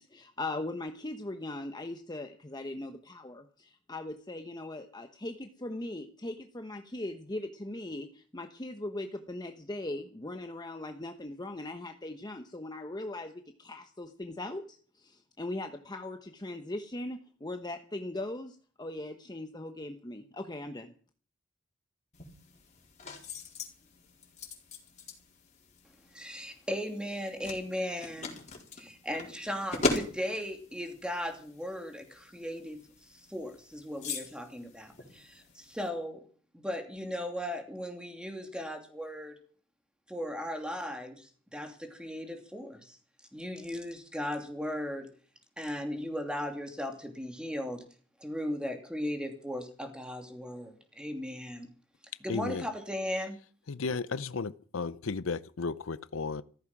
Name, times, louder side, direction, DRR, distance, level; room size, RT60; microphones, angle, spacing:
voice 1, 0.0-20.9, left 2 dB, 20° left, 1.0 m, -39 dB
sound 1, 22.1-35.9, left 3 dB, 35° left, 4.2 m, -40 dB
voice 2, 26.1-28.4 28.8-32.9 33.1-36.2 36.5-39.4 40.1-43.0 43.3-45.1 45.6-47.8 48.2-51.7 52.2-53.4, equal, 5° right, 2.8 m, -37 dB
voice 3, 52.3-52.7 53.7-56.4, left 4 dB, 80° left, 0.7 m, -34 dB
15.0 x 14.0 x 6.0 m
head